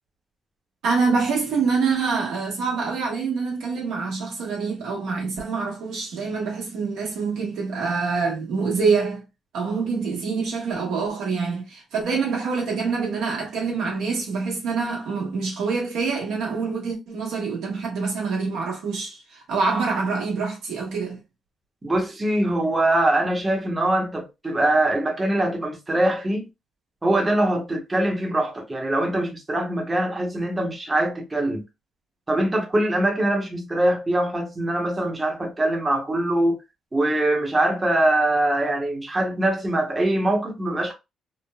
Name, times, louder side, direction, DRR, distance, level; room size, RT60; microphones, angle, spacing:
voice 1, 0.8-9.2 9.5-21.2, right 4 dB, 85° right, 1.1 m, -25 dB
voice 2, 21.8-26.4 27.0-31.6 32.3-36.6 36.9-40.9, right 1 dB, 20° right, 0.8 m, -23 dB
3.1 x 2.1 x 2.2 m
cardioid pair, 90°, 0 cm